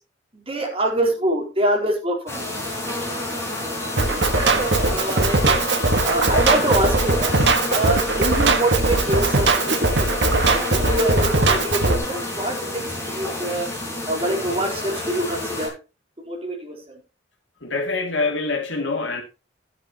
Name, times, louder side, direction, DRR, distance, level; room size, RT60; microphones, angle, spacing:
voice 1, 0.3-2.6 3.9-5.6 6.0-7.3 7.7-10.1 10.5-13.7 14.1-15.7 16.2-17.0, right 1 dB, 30° right, 4.2 m, -25 dB
sound 1, 2.3-15.7, left 2 dB, 15° left, 5.6 m, -29 dB
Drum kit, 4.0-12.0, right 3 dB, 65° right, 1.7 m, -20 dB
voice 2, 17.6-19.2, left 3 dB, 75° left, 2.8 m, -25 dB
13.5 x 9.8 x 3.0 m
head